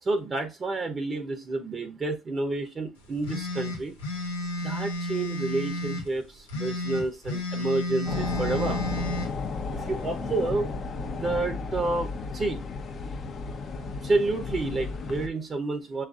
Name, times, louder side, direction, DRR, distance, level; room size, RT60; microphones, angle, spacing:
voice 1, 0.0-3.9 4.6-8.8 9.7-10.7 11.2-12.6 14.0-16.0, right 2 dB, 35° right, 0.7 m, -29 dB
sound 1, 3.2-6.1 6.5-9.3, left 1 dB, 90° left, 0.8 m, -31 dB
sound 2, 8.1-15.3, left 4 dB, 50° left, 0.7 m, -33 dB
6.2 x 2.4 x 2.4 m
hypercardioid pair, 60°, 0 cm